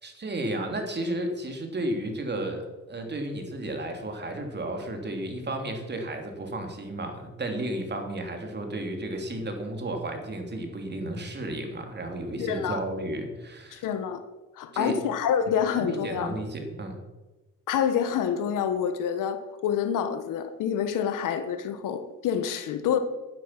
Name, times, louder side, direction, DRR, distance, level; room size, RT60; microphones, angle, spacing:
voice 1, 0.0-2.6 2.9-13.8 14.7-14.9 15.7-17.0, right 1 dB, 30° right, 4 dB, 3.2 m, -33 dB
voice 2, 12.4-12.8 13.7-14.2 14.6-16.3 17.7-23.0, left 8 dB, 70° left, 10 dB, 1.4 m, -27 dB
11.0 x 10.5 x 6.0 m, 1.1 s
cardioid pair, 85°, 33 cm